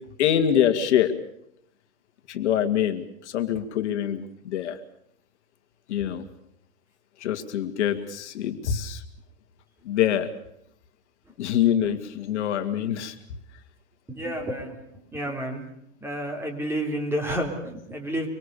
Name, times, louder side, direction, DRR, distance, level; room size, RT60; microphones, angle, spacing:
voice 1, 0.2-1.1 2.3-4.8 5.9-6.2 7.2-9.0 9.8-10.3 11.4-13.2, left 10 dB, 60° left, 8 dB, 2.3 m, -25 dB
voice 2, 14.1-14.8 15.1-15.6 16.0-18.3, right 1 dB, 5° right, 3 dB, 3.5 m, -30 dB
25.0 x 25.0 x 6.8 m, 0.73 s
hypercardioid pair, 150°, 40 cm